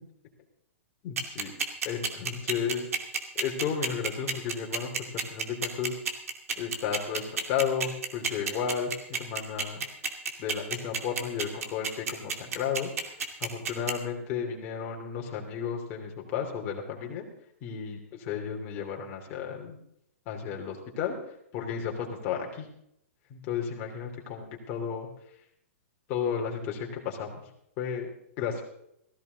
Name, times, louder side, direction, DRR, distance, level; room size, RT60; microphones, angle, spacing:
voice 1, 1.0-1.5 1.8-2.9 3.3-6.0 6.6-9.8 10.4-13.1 13.4-17.3 17.6-19.8 20.3-21.2 21.5-22.7 23.3-25.1 26.1-27.4 27.8-28.1 28.4-28.6, left 7 dB, 25° left, 0 dB, 2.8 m, -33 dB
sound 1, 1.2-13.9, right 5 dB, 80° right, 2.4 m, -29 dB
17.5 x 15.0 x 4.0 m, 0.75 s
hypercardioid pair, 170°, 8 cm